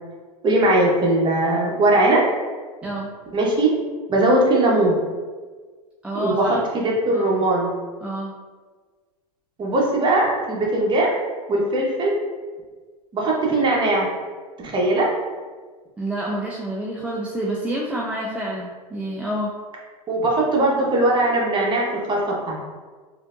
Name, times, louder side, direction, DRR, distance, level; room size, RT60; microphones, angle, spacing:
voice 1, 0.4-2.2 3.3-3.7 4.1-4.9 6.1-7.7 9.6-11.1 11.5-12.1 13.1-14.1 14.6-15.1 20.1-22.2 22.5-22.6, right 2 dB, 25° right, -3 dB, 0.9 m, -19 dB
voice 2, 6.0-6.6 7.1-7.3 8.0-8.3 16.0-19.5, right 1 dB, 5° right, -4 dB, 0.3 m, -28 dB
4.2 x 2.7 x 2.5 m, 1.4 s
hypercardioid pair, 100°, 20 cm